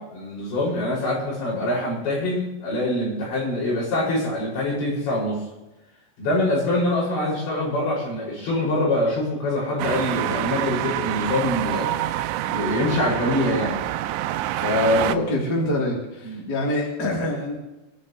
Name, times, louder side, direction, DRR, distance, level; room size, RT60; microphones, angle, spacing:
voice 1, 0.0-5.4 6.2-11.9 12.5-13.8 14.6-15.3 16.2-16.4, left 1 dB, 65° left, -5 dB, 8.8 m, -24 dB
sound 1, 9.8-15.2, right 14 dB, 85° right, 2.9 m, -27 dB
voice 2, 15.0-17.6, left 1 dB, 25° left, -3 dB, 3.6 m, -25 dB
25.0 x 12.5 x 3.3 m, 0.99 s
omnidirectional pair, 5.5 m